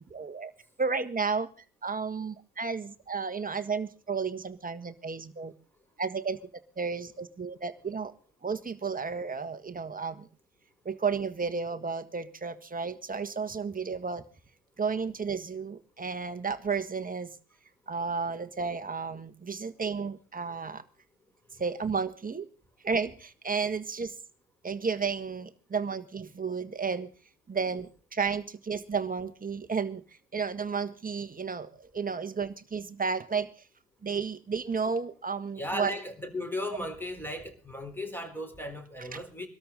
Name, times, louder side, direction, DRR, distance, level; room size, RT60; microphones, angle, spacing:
voice 1, 0.1-0.5 0.8-1.5 1.8-5.5 6.0-6.4 6.8-8.1 8.4-10.3 10.8-14.2 14.8-17.3 17.9-20.8 21.6-22.5 22.8-24.2 24.6-27.1 27.5-30.0 30.3-33.5 34.0-35.9 39.1-39.2, right 5 dB, 15° right, 9 dB, 1.6 m, -32 dB
voice 2, 35.6-39.5, left 1 dB, 5° left, 7 dB, 4.0 m, -36 dB
23.5 x 13.0 x 3.9 m, 0.36 s
hypercardioid pair, 65°, 47 cm